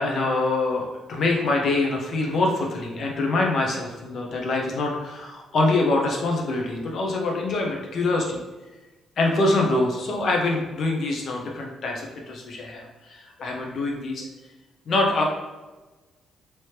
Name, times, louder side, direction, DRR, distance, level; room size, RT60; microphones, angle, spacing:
voice 1, 0.0-8.4 9.2-14.3 14.9-15.2, left 2 dB, 60° left, 0 dB, 0.8 m, -24 dB
3.2 x 3.1 x 2.9 m, 1.2 s
cardioid pair, 90°, 0 cm